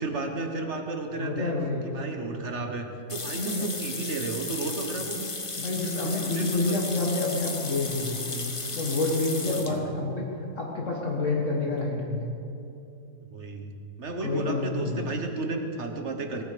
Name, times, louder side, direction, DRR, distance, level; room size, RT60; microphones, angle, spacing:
voice 1, 0.0-1.5 1.8-5.3 6.0-6.8 9.5-9.8 13.3-13.7 14.0-16.4, right 3 dB, 45° right, 4 dB, 1.5 m, -33 dB
voice 2, 1.2-1.9 3.3-3.7 5.5-8.4 8.7-10.3 10.6-12.3 14.2-15.0, left 2 dB, 50° left, -2 dB, 1.9 m, -28 dB
sound 1, 3.1-9.8, left 3 dB, 25° left, 0.9 m, -35 dB
18.5 x 13.5 x 5.1 m, 2.8 s
omnidirectional pair, 1.7 m